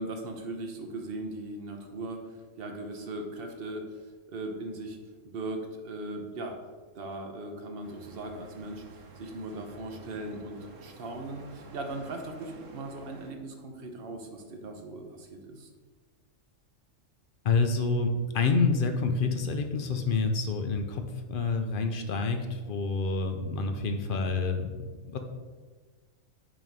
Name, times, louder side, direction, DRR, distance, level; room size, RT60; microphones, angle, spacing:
voice 1, 0.0-5.0 5.2-6.6 6.9-15.7, right 2 dB, 50° right, 3 dB, 1.1 m, -39 dB
sound 1, 7.8-13.3, right 3 dB, 85° right, 1.2 m, -50 dB
voice 2, 17.4-24.7 25.0-25.2, left 4 dB, 50° left, 6 dB, 0.7 m, -28 dB
9.0 x 3.0 x 5.2 m, 1.4 s
omnidirectional pair, 1.3 m